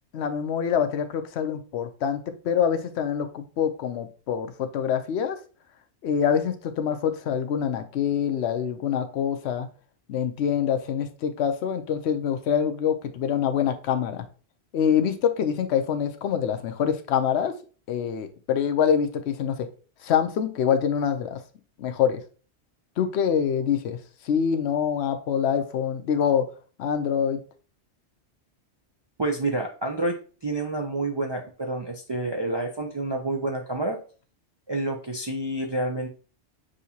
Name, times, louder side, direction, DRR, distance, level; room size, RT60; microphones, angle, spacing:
voice 1, 0.1-5.4 6.0-9.7 10.1-14.2 14.7-17.5 17.9-19.7 20.0-21.4 21.8-22.2 23.0-24.0 24.2-26.5 26.8-27.4, left 8 dB, 75° left, 8 dB, 0.9 m, -25 dB
voice 2, 29.2-34.0 34.7-36.1, right 2 dB, 45° right, 1 dB, 0.3 m, -28 dB
6.4 x 2.8 x 2.7 m, 0.38 s
omnidirectional pair, 1.1 m